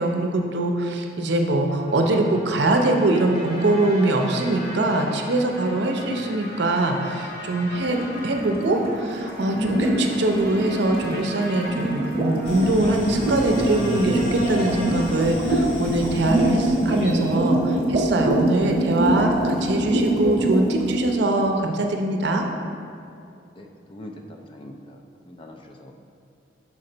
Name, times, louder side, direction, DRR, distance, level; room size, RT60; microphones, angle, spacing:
voice 1, 0.0-22.5, right 2 dB, 65° right, 3 dB, 0.6 m, -23 dB
sound 1, 1.6-15.1, left 1 dB, 55° left, 0.9 m, -38 dB
sound 2, 7.7-21.2, right 1 dB, 30° right, 0.9 m, -24 dB
sound 3, 12.4-17.4, left 1 dB, 85° left, 0.8 m, -33 dB
voice 2, 23.6-25.9, left 1 dB, 25° left, 3 dB, 0.3 m, -43 dB
6.1 x 4.4 x 3.8 m, 2.6 s
head